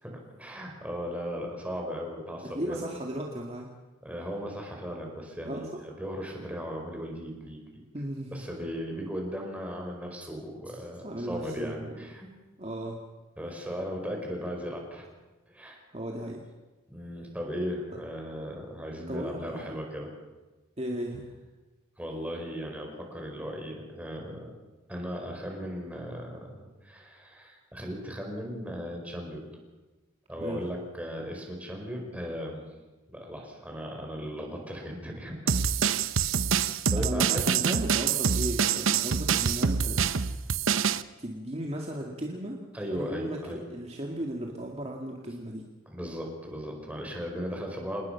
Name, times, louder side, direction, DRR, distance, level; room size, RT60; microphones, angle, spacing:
voice 1, 0.0-2.9 4.0-7.8 8.3-12.3 13.4-15.1 15.5-15.8 16.9-20.1 22.0-24.5 24.9-29.5 30.3-32.6 33.1-35.6 36.5-37.3 42.7-43.7 45.9-48.1, equal, 5° right, 1 dB, 4.9 m, -37 dB
voice 2, 2.4-3.7 5.5-5.6 7.9-8.4 11.0-12.1 12.6-13.0 15.9-16.4 19.1-19.8 20.8-21.4 30.4-30.7 37.0-40.5 41.2-42.6 42.9-45.6, right 1 dB, 30° right, 0 dB, 2.1 m, -36 dB
sound 1, 35.5-41.0, right 6 dB, 75° right, 0.8 m, -26 dB
27.0 x 20.0 x 5.9 m, 1.2 s
head